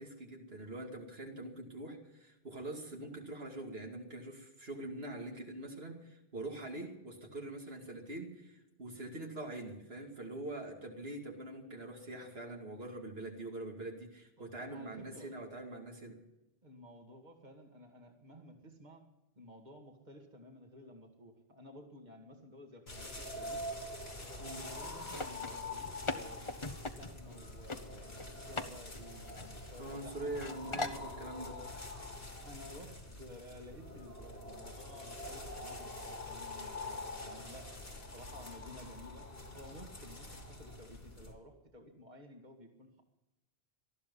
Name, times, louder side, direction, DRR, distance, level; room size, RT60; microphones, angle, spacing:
voice 1, 0.0-16.2 24.4-24.6 29.8-31.6, right 1 dB, 70° right, 1 dB, 2.7 m, -44 dB
voice 2, 14.4-15.3 16.6-19.0 19.4-23.7 24.2-26.6 26.9-31.5 32.4-39.3 39.5-43.0, equal, 45° right, 2 dB, 2.3 m, -54 dB
sound 1, 22.9-41.3, left 2 dB, 80° left, 3.1 m, -45 dB
sound 2, 25.0-27.4 27.7-27.8 28.2-28.7 28.9-30.0 30.3-31.0, left 2 dB, 30° left, 1.1 m, -40 dB
19.0 x 13.5 x 5.5 m, 0.95 s
omnidirectional pair, 1.1 m